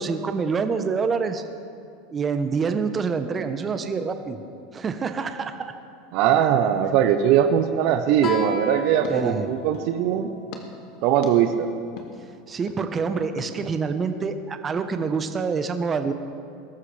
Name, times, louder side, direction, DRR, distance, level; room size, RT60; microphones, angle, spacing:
voice 1, 0.0-1.4 2.1-4.4 4.7-5.7 9.1-9.6 12.5-16.1, right 5 dB, 30° right, 8 dB, 0.9 m, -26 dB
voice 2, 6.1-10.3 11.0-11.7, right 9 dB, 60° right, 8 dB, 0.7 m, -20 dB
sound 1, 8.2-10.0 10.5-10.6 11.2-11.3 12.0-12.1 12.7-12.8 13.4-13.5, left 6 dB, 65° left, 1.7 m, -41 dB
Guitar, 8.2-11.5, left 2 dB, 45° left, 1.9 m, -34 dB
21.0 x 13.0 x 3.4 m, 2.4 s
supercardioid pair, 105°, 0 cm